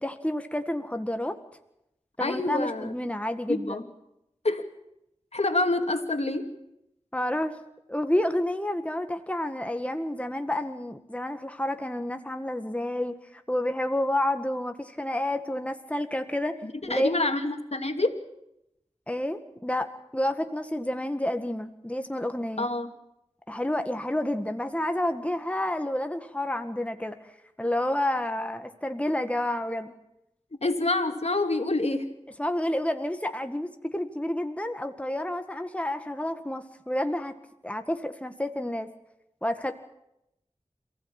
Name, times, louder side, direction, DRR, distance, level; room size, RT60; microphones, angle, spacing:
voice 1, 0.0-1.4 2.2-3.8 7.1-7.5 7.9-16.5 16.9-17.1 19.1-19.9 20.1-22.7 23.5-27.3 27.6-29.9 32.4-37.3 37.6-38.9 39.4-39.7, left 1 dB, 10° left, 7 dB, 1.7 m, -29 dB
voice 2, 2.2-2.9 3.5-3.8 4.4-4.6 5.3-6.5 16.6-18.2 22.6-22.9 30.6-32.1, left 2 dB, 60° left, 6 dB, 2.7 m, -27 dB
28.0 x 16.0 x 8.9 m, 0.84 s
wide cardioid pair, 40°, 12 cm